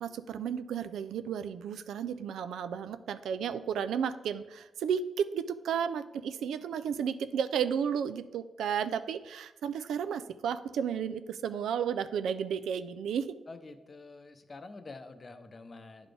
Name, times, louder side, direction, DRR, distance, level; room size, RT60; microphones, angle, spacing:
voice 1, 0.0-13.4, right 7 dB, 90° right, 12 dB, 0.3 m, -33 dB
voice 2, 13.5-16.1, left 3 dB, 40° left, 8 dB, 0.6 m, -47 dB
10.5 x 4.1 x 3.3 m, 1.1 s
cardioid pair, 75°, 0 cm